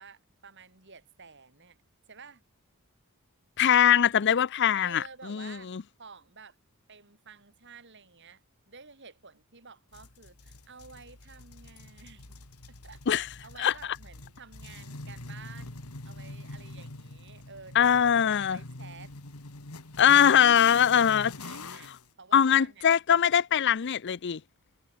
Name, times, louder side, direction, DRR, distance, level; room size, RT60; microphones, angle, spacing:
voice 1, 0.0-1.8 2.1-2.4 4.7-5.7 6.0-6.6 6.9-12.4 12.8-19.1 20.7-21.9 22.2-23.2 23.6-23.8, right 5 dB, 55° right, 5.6 m, -51 dB
voice 2, 3.6-5.0 5.3-5.8 13.1-13.3 13.6-13.7 17.8-18.6 20.0-21.3 22.3-24.4, left 9 dB, 50° left, 0.5 m, -22 dB
sound 1, 9.9-22.1, left 2 dB, 90° left, 2.4 m, -45 dB
head